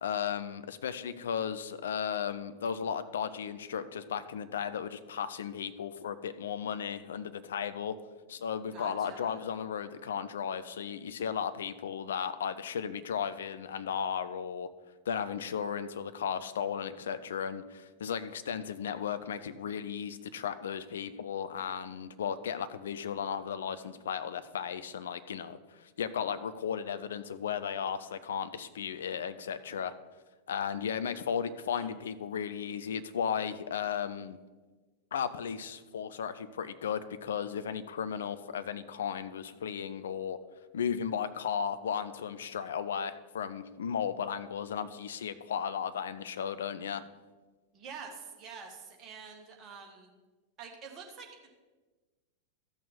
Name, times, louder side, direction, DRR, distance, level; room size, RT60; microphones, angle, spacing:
voice 1, 0.0-8.0 8.3-14.7 15.1-29.9 30.5-34.4 35.1-40.4 40.7-47.0, left 7 dB, 65° left, 12 dB, 0.5 m, -35 dB
voice 2, 8.7-9.4 31.6-31.9 47.7-50.1 50.6-51.3, right 5 dB, 30° right, 1 dB, 1.7 m, -47 dB
13.5 x 6.4 x 4.1 m, 1.3 s
figure-of-eight pair, 90°, 0 cm